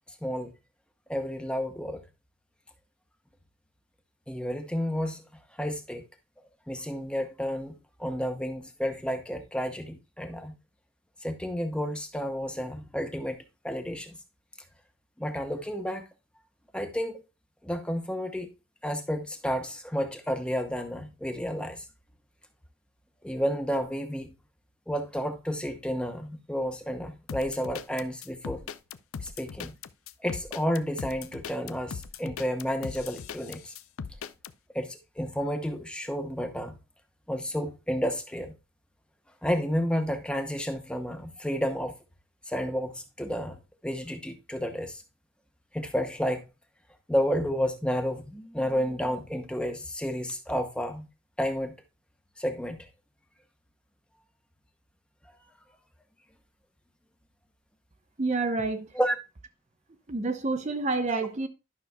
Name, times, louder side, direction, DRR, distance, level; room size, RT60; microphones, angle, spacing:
voice 1, 1.1-2.0 4.3-5.2 5.6-6.0 6.7-10.6 11.2-13.4 13.6-14.1 15.2-16.0 16.7-17.2 17.6-18.5 18.8-21.8 23.2-24.3 24.9-28.6 29.2-29.7 30.2-33.7 34.7-36.7 37.3-38.5 39.4-41.9 42.5-45.0 45.7-46.5 47.1-51.1 51.4-51.7 52.4-52.9 58.9-59.2, equal, 5° left, 0.7 m, -31 dB
sound 1, 27.3-34.5, left 6 dB, 80° left, 0.5 m, -39 dB
voice 2, 58.2-58.9 60.1-61.5, right 3 dB, 35° right, 0.6 m, -28 dB
12.0 x 6.0 x 2.2 m
head